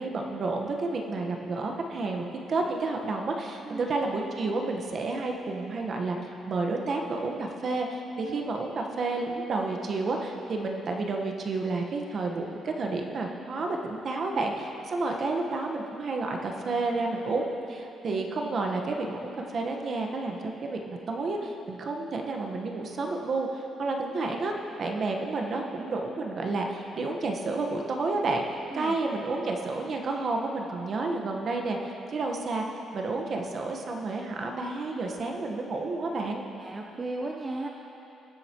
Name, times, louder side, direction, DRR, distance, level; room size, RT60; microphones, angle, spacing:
voice 1, 0.0-6.2 6.5-24.5 24.8-32.6 32.9-36.4, right 3 dB, 50° right, 2 dB, 1.2 m, -30 dB
voice 2, 36.6-37.7, right 2 dB, 30° right, 0 dB, 0.8 m, -35 dB
21.0 x 7.9 x 3.0 m, 3.0 s
cardioid pair, 90°, 0 cm